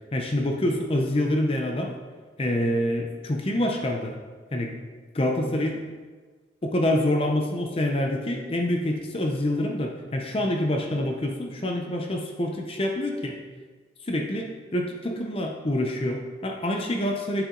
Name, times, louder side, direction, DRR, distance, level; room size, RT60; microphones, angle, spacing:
voice 1, 0.1-1.9 2.4-4.1 4.5-4.7 5.1-5.8 6.6-13.3 14.1-17.5, left 1 dB, 30° left, 2 dB, 0.6 m, -26 dB
8.0 x 6.7 x 3.8 m, 1.4 s
head